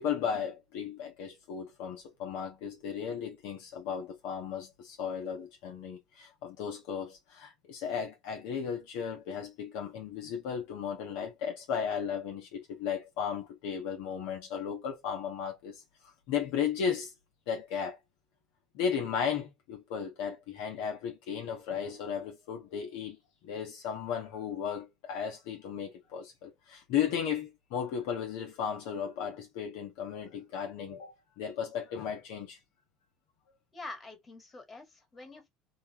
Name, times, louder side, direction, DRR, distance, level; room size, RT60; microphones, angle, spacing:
voice 1, 0.0-17.1 17.5-18.0 18.7-23.2 23.4-32.6, left 7 dB, 70° left, 0.8 m, -35 dB
voice 2, 33.7-35.5, left 2 dB, 25° left, 1.5 m, -46 dB
2.9 x 2.2 x 2.9 m
hypercardioid pair, 75°, 0 cm